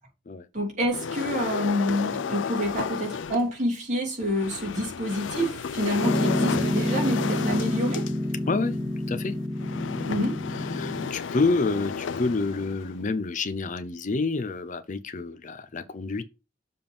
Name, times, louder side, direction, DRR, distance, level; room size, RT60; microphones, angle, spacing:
voice 1, 0.5-8.1 10.1-10.4, equal, 40° right, 3.0 m, -27 dB
sound 1, 0.9-3.5 4.2-13.1, left 6 dB, 90° left, 0.4 m, -33 dB
Piano, 6.0-11.1, left 1 dB, 5° right, 0.5 m, -28 dB
voice 2, 10.7-16.2, left 3 dB, 45° left, 0.6 m, -28 dB
6.9 x 3.7 x 5.4 m
head